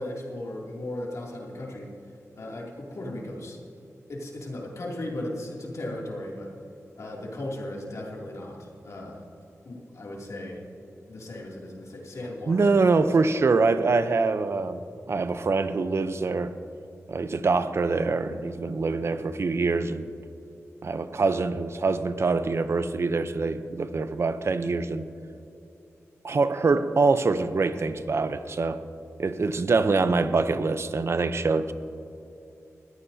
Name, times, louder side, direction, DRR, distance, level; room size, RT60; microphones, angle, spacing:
voice 1, 0.0-1.9 2.3-3.6 4.1-6.5 6.9-9.2 9.6-10.6 11.1-13.4 19.0-19.3, left 1 dB, 70° left, -3 dB, 2.7 m, -37 dB
voice 2, 12.5-14.8 15.1-16.5 17.1-20.1 20.8-25.0 26.2-28.8 29.2-31.7, right 3 dB, 55° right, 11 dB, 0.7 m, -24 dB
21.0 x 14.0 x 2.8 m, 2.8 s
wide cardioid pair, 115°, 5 cm